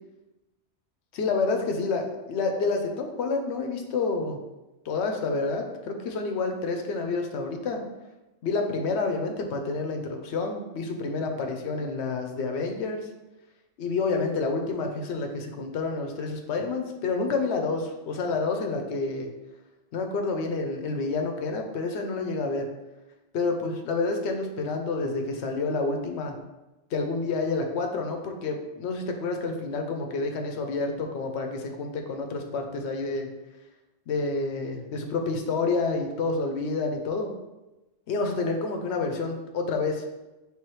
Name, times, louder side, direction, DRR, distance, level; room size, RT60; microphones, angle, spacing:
voice 1, 1.1-4.4 4.9-7.8 8.4-13.1 13.8-19.3 19.9-22.7 23.3-26.3 26.9-33.3 34.1-37.3 38.1-40.0, left 3 dB, 90° left, 4 dB, 0.9 m, -29 dB
4.7 x 3.4 x 3.0 m, 1.0 s
omnidirectional pair, 1.1 m